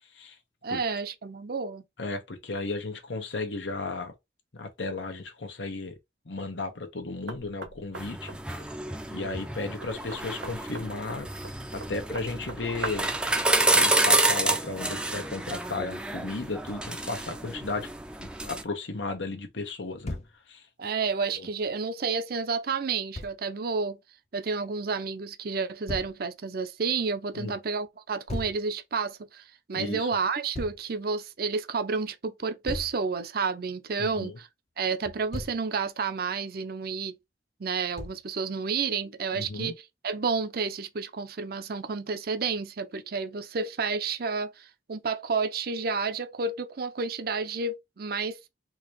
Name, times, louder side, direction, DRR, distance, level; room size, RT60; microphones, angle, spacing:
voice 1, 0.6-1.8 20.8-24.0 24.3-29.4 29.7-34.5 34.8-37.1 37.6-48.5, right 4 dB, 55° right, 0.6 m, -30 dB
voice 2, 2.0-4.1 4.5-6.0 6.2-8.3 9.1-11.3 11.7-13.1 13.7-17.9 18.2-20.2 20.5-20.7 21.3-21.5 27.3-27.5 29.8-30.1 34.0-34.4 39.3-39.7, left 3 dB, 90° left, 1.1 m, -34 dB
Knock, 7.3-13.2, right 3 dB, 80° right, 1.0 m, -42 dB
sound 1, 7.9-18.6, right 2 dB, 5° right, 0.4 m, -29 dB
Thump thud, 20.0-20.4 23.1-23.4 25.9-26.2 28.3-28.6 30.5-30.8 32.7-33.0 35.0-35.6 38.0-38.3, left 1 dB, 40° left, 0.6 m, -36 dB
3.8 x 2.8 x 3.1 m
head